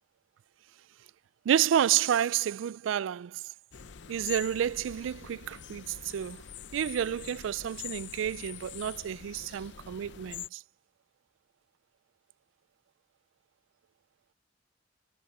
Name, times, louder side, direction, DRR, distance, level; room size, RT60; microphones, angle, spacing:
voice 1, 1.5-3.5 4.1-6.4 6.7-10.6, right 9 dB, 80° right, 0.3 m, -30 dB
sound 1, 3.7-10.5, left 9 dB, 65° left, 0.6 m, -45 dB
head